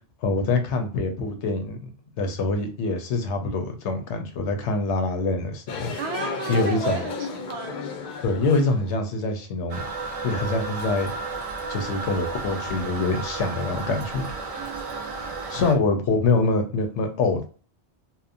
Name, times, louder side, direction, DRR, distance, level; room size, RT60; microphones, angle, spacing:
voice 1, 0.2-1.9 2.2-5.9 6.5-7.0 8.2-9.8 10.2-11.1 11.7-14.2 15.5-17.5, left 3 dB, 85° left, 6 dB, 0.9 m, -25 dB
sound 1, 5.7-8.9, left 5 dB, 60° left, 0.6 m, -34 dB
voice 2, 6.0-7.9 14.5-15.3, right 4 dB, 70° right, 5 dB, 0.8 m, -33 dB
Toilet flush, 9.7-15.7, right 3 dB, 50° right, 0.4 m, -33 dB
2.8 x 2.1 x 2.4 m, 0.39 s
omnidirectional pair, 1.1 m